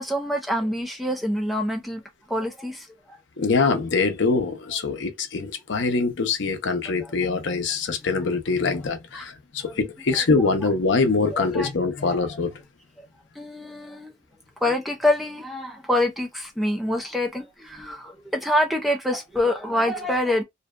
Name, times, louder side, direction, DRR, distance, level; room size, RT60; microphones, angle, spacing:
voice 1, 0.0-2.0 2.3-3.2 7.0-7.1 9.1-9.3 9.6-9.8 10.1-10.5 11.3-11.7 12.0-12.3 13.0-13.1 13.4-14.1 14.6-20.4, left 1 dB, ahead, 0.4 m, -26 dB
voice 2, 3.4-12.6, left 4 dB, 65° left, 0.6 m, -24 dB
2.6 x 2.2 x 2.2 m
head